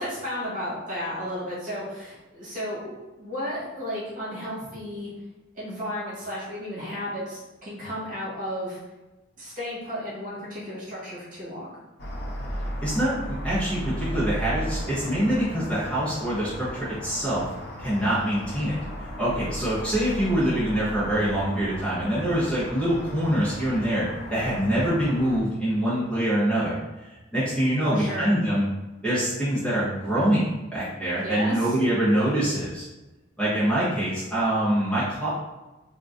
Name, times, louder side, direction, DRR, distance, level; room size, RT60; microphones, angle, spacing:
voice 1, 0.0-5.1 5.5-8.8 9.4-11.7 27.8-28.3 31.2-31.7, equal, 45° right, -8 dB, 1.4 m, -33 dB
sound 1, 12.0-25.4, equal, 55° left, 0.6 m, -35 dB
voice 2, 12.8-17.4 17.8-28.7 29.0-32.9 33.4-35.3, right 1 dB, 5° left, -11 dB, 0.9 m, -25 dB
3.8 x 2.3 x 2.5 m, 1.1 s
head